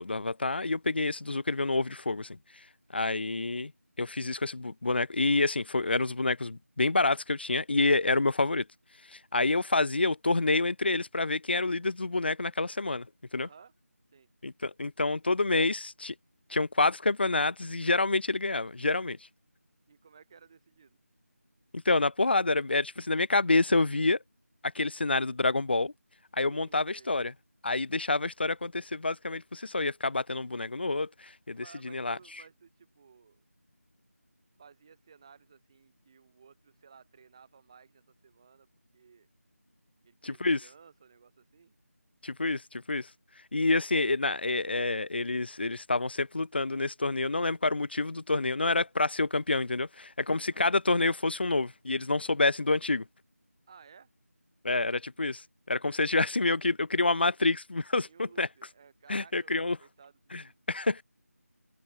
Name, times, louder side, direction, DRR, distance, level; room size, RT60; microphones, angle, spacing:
voice 1, 0.0-2.4 2.9-3.7 4.0-8.6 9.1-13.1 13.3-13.5 14.4-16.1 16.5-19.2 21.7-24.2 24.6-25.9 26.3-27.3 27.6-32.2 40.2-40.6 42.2-43.1 43.5-53.0 54.6-58.5 59.1-59.8 60.3-60.4 60.7-61.0, left 3 dB, 40° left, 1.0 m, -28 dB
voice 2, 13.4-13.7 14.1-14.3 19.9-21.0 26.5-27.1 31.5-33.4 34.6-39.3 40.0-41.7 50.4-50.6 53.7-54.1 55.9-56.1 58.1-59.5 59.8-60.5, right 6 dB, 20° right, 5.9 m, -57 dB
open air
figure-of-eight pair, 175°, 8 cm